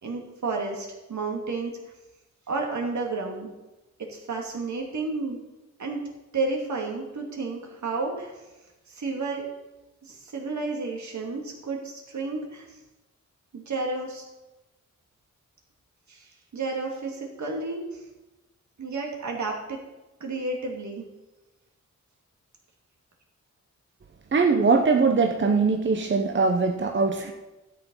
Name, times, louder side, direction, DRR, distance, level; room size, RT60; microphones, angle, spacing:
voice 1, 0.0-1.7 2.5-3.5 4.1-5.4 5.8-6.0 6.3-8.3 8.9-9.4 10.0-12.7 13.5-14.2 16.1-18.0 18.8-19.8 20.2-21.0, right 3 dB, 75° right, 0 dB, 2.6 m, -31 dB
voice 2, 24.3-27.3, right 4 dB, 40° right, 3 dB, 0.9 m, -21 dB
12.0 x 7.1 x 5.6 m, 1.0 s
wide cardioid pair, 90°, 29 cm